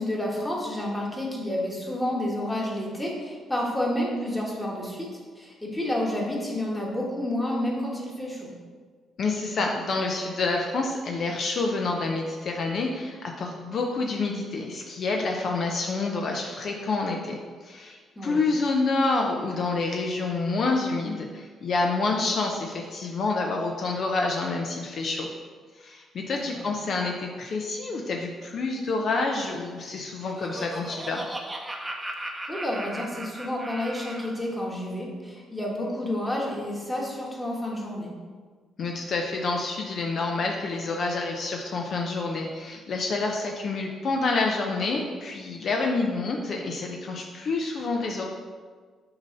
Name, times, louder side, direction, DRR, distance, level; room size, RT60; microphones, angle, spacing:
voice 1, 0.0-8.5 18.2-18.4 26.3-26.6 32.5-38.1, left 1 dB, 10° left, -3 dB, 1.5 m, -30 dB
voice 2, 9.2-25.3 25.8-31.3 38.8-48.2, left 3 dB, 55° left, 1 dB, 0.6 m, -28 dB
Laughter, 29.9-34.4, right 1 dB, 15° right, 0.7 m, -37 dB
6.7 x 2.8 x 5.3 m, 1.5 s
cardioid pair, 90°, 0 cm